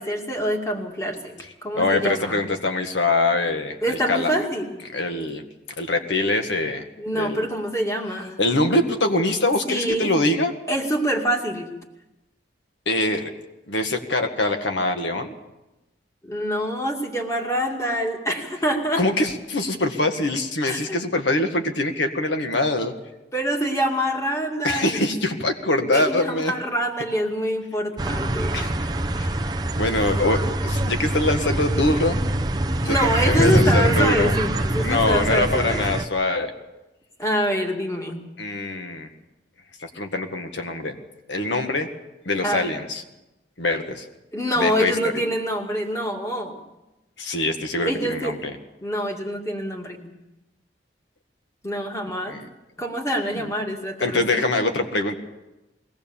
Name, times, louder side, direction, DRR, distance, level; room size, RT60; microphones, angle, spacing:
voice 1, 0.0-1.3 1.6-2.5 3.8-4.8 7.0-8.4 9.7-10.1 10.7-11.7 16.2-19.0 20.6-21.0 23.3-25.0 25.9-28.5 32.8-35.8 37.2-38.3 42.4-42.7 44.3-46.6 47.8-48.4 48.8-50.1 51.6-52.4 52.8-54.4, equal, 15° left, 2 dB, 2.3 m, -25 dB
voice 2, 1.8-4.3 4.9-5.4 5.8-6.9 7.1-7.5 8.4-10.5 12.9-13.3 13.7-15.3 19.0-22.9 24.6-26.5 28.5-28.7 29.2-29.3 29.8-32.2 32.9-33.0 33.2-34.4 34.7-36.5 38.4-39.1 39.8-41.0 41.3-41.9 42.3-43.0 43.6-44.0 44.6-44.9 47.2-48.5 52.3-52.5 53.3-53.5 54.0-55.2, left 2 dB, 90° left, 6 dB, 1.8 m, -23 dB
sound 1, 28.0-36.1, right 1 dB, 20° right, 0.7 m, -24 dB
22.0 x 18.0 x 7.2 m, 1.0 s
head